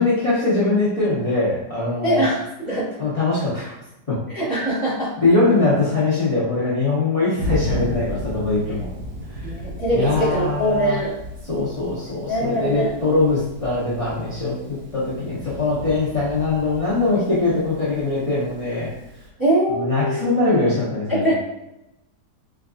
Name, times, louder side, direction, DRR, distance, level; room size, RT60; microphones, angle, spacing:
voice 1, 0.0-2.2 3.0-3.7 4.1-4.2 5.2-8.9 9.9-11.0 11.4-14.6 14.9-18.9 19.7-21.3, left 3 dB, 45° left, -10 dB, 0.4 m, -21 dB
voice 2, 2.0-2.9 4.3-5.1 9.4-11.1 11.9-12.0 12.3-12.9 19.4-20.2 21.1-21.3, right 1 dB, 15° right, -11 dB, 1.0 m, -22 dB
Thunder, 7.4-19.3, equal, 70° right, 1.0 m, -34 dB
4.5 x 2.4 x 2.3 m, 0.88 s
omnidirectional pair, 1.9 m